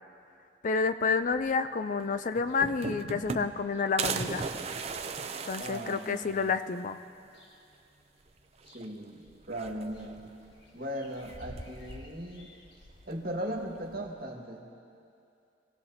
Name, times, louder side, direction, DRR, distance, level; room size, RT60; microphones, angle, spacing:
voice 1, 0.6-4.4 5.5-7.0, left 5 dB, 45° left, 11 dB, 0.4 m, -29 dB
sound 1, 1.1-1.7 2.1-2.2 2.4-6.5 7.0-7.8 8.1-14.0, left 1 dB, 70° left, 1.6 m, -53 dB
sound 2, 2.0-2.1 2.4-3.7 4.0-6.6 7.0-7.1 7.4-7.5 8.6-9.1 9.4-10.2 11.2-11.8, right 4 dB, 35° right, 0.6 m, -36 dB
voice 2, 5.6-6.5 8.7-10.3 10.7-12.5 13.1-14.7, right 1 dB, 60° right, 0 dB, 1.8 m, -38 dB
25.5 x 16.5 x 2.8 m, 2.5 s
head